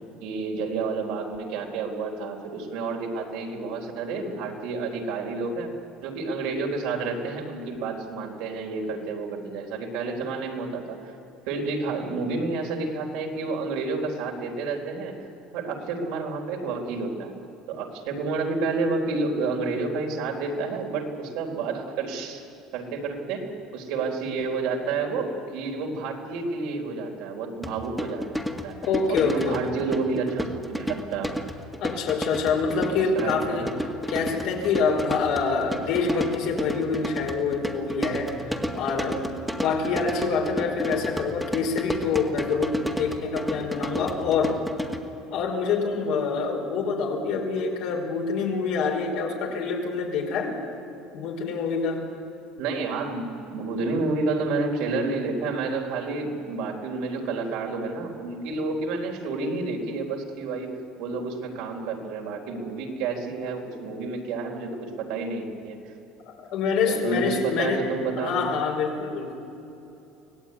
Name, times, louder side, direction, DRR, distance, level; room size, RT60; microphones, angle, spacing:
voice 1, 0.2-5.7 6.0-11.0 11.5-15.2 15.5-17.3 17.7-23.4 23.7-28.3 28.6-28.8 29.2-31.3 33.1-33.7 52.6-60.7 61.0-65.8 66.8-68.5, right 3 dB, 75° right, 1 dB, 4.0 m, -30 dB
sound 1, 27.6-45.0, equal, ahead, 1.9 m, -32 dB
voice 2, 28.8-29.6 31.8-33.7 34.1-38.5 38.7-39.3 39.5-44.6 45.3-50.6 51.1-52.0 66.2-67.8 68.2-69.4, left 5 dB, 70° left, 1 dB, 5.0 m, -26 dB
24.5 x 17.5 x 9.7 m, 2.9 s
cardioid pair, 125°, 0 cm